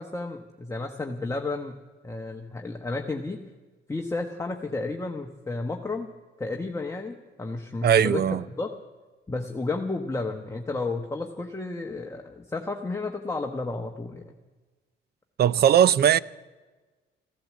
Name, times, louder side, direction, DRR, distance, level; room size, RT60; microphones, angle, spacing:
voice 1, 0.0-1.8 2.0-3.4 3.9-6.1 6.4-8.8 9.3-14.3, left 3 dB, 15° left, 1.1 m, -32 dB
voice 2, 7.8-8.4 15.4-16.2, right 9 dB, 55° right, 0.5 m, -19 dB
15.0 x 11.5 x 7.4 m
cardioid pair, 90°, 20 cm